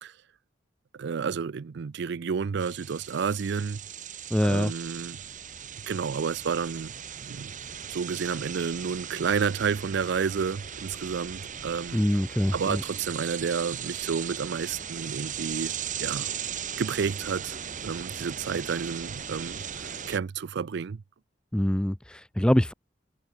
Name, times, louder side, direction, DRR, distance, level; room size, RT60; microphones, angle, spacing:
voice 1, 0.9-3.8 4.4-5.2 5.9-6.9 7.2-7.5 7.9-12.0 12.5-15.7 16.0-16.3 16.8-21.0, right 6 dB, 65° right, 0.4 m, -30 dB
sound 1, 2.6-20.2, right 8 dB, 45° right, 1.4 m, -38 dB
voice 2, 4.3-4.7 11.9-12.8 21.5-22.7, equal, 5° left, 0.5 m, -24 dB
head